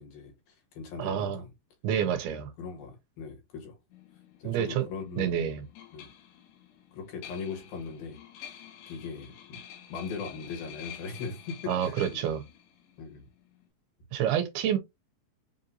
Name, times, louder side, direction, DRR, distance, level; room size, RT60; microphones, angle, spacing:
voice 1, 0.0-1.5 2.6-3.8 4.4-5.5 5.9-6.1 6.9-8.2 8.4-8.5 8.9-9.6 9.9-12.3 13.0-13.3, left 5 dB, 65° left, 3.0 m, -40 dB
voice 2, 1.0-1.4 1.8-2.5 4.4-4.8 5.2-5.7 11.7-12.5 14.1-14.8, right 9 dB, 80° right, 2.6 m, -28 dB
sound 1, 3.9-13.7, left 9 dB, 85° left, 3.4 m, -49 dB
7.5 x 2.6 x 2.7 m
omnidirectional pair, 4.8 m